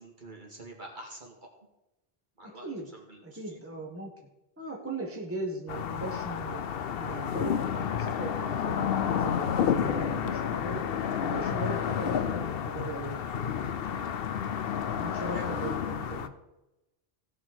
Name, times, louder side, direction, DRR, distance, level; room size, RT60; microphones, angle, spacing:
voice 1, 0.0-1.4 2.4-2.7 2.9-3.6 15.0-16.3, right 2 dB, 45° right, -1 dB, 2.6 m, -46 dB
voice 2, 2.4-2.9 3.2-4.1 4.6-6.6 7.0-10.8 11.2-13.3 15.0-16.3, right 2 dB, 10° right, 0 dB, 1.6 m, -39 dB
sound 1, 5.7-16.3, left 8 dB, 65° left, 0.9 m, -30 dB
17.0 x 6.1 x 4.9 m, 0.95 s
omnidirectional pair, 1.1 m